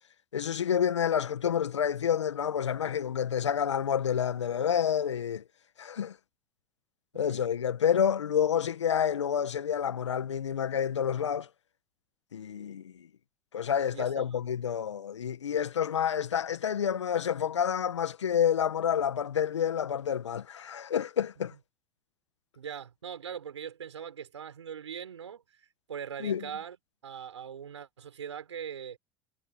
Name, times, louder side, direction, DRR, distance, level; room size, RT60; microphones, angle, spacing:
voice 1, 0.3-5.4 5.8-6.2 7.2-11.5 12.3-13.1 13.5-21.5 26.2-26.5, left 8 dB, 90° left, 1.7 m, -29 dB
voice 2, 13.9-14.4 22.5-26.8 27.0-29.0, right 8 dB, 90° right, 5.9 m, -41 dB
hypercardioid pair, 70°, 15 cm